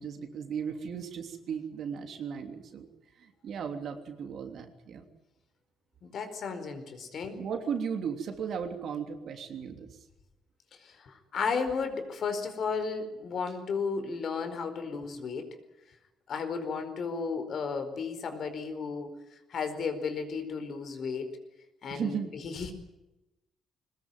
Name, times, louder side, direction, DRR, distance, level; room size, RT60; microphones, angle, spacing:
voice 1, 0.0-2.9 3.1-5.0 7.4-10.0 21.9-22.3, right 7 dB, 55° right, 5 dB, 3.1 m, -36 dB
voice 2, 6.0-7.4 10.8-15.5 16.3-19.1 19.5-21.3 21.8-22.7, left 5 dB, 50° left, 8 dB, 4.6 m, -34 dB
22.0 x 20.5 x 9.3 m, 0.96 s
cardioid pair, 140°, 0 cm